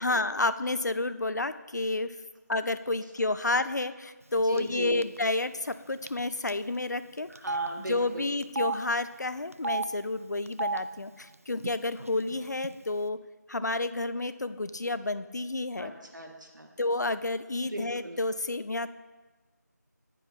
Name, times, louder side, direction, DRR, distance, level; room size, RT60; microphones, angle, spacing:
voice 1, 0.0-2.1 2.5-7.3 7.8-13.2 13.5-15.9 16.8-18.9, left 2 dB, 70° left, 12 dB, 0.6 m, -30 dB
voice 2, 4.4-5.0 7.3-8.3 15.8-16.7 17.6-18.2, right 1 dB, 85° right, 2 dB, 1.8 m, -38 dB
Telephone, 4.6-4.8 5.0-5.2 6.1-6.2 6.5-6.6 7.4-7.7 8.4-8.8 9.5-9.9 10.5-10.8 11.6-11.7 12.0-12.7, right 3 dB, 50° right, 0.4 m, -31 dB
14.5 x 10.0 x 2.7 m, 1.2 s
figure-of-eight pair, 175°, 10 cm